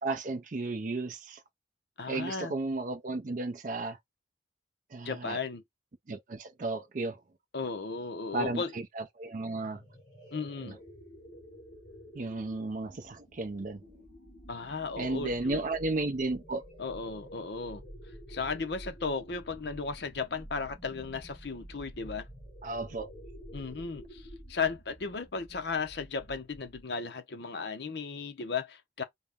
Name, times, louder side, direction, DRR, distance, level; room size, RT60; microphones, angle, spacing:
voice 1, 0.0-1.4 2.1-4.0 4.9-5.4 6.1-7.2 8.3-8.6 9.0-9.8 10.6-10.7 12.1-13.8 15.0-16.6 22.6-23.1, right 2 dB, 40° right, 0.5 m, -33 dB
voice 2, 2.0-2.5 5.0-5.6 7.5-8.7 10.3-10.8 14.5-15.6 16.8-17.8 18.3-22.3 23.5-29.0, left 4 dB, 60° left, 0.6 m, -35 dB
sound 1, 9.5-27.0, equal, 35° left, 2.1 m, -50 dB
4.0 x 2.1 x 3.5 m
head